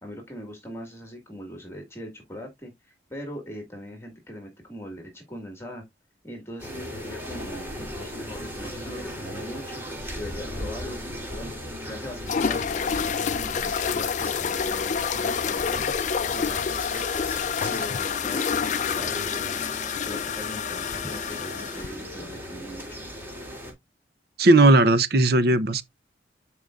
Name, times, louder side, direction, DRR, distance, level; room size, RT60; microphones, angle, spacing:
voice 1, 0.0-5.8 6.2-9.8 10.1-11.5 11.8-15.9 16.3-17.2 17.7-23.0, equal, 15° left, 1.9 m, -40 dB
sound 1, 6.6-23.7, equal, 15° right, 3.4 m, -37 dB
sound 2, 12.3-21.9, left 7 dB, 45° left, 0.4 m, -28 dB
voice 2, 24.4-25.8, right 2 dB, 60° right, 0.8 m, -17 dB
12.0 x 4.8 x 2.5 m
head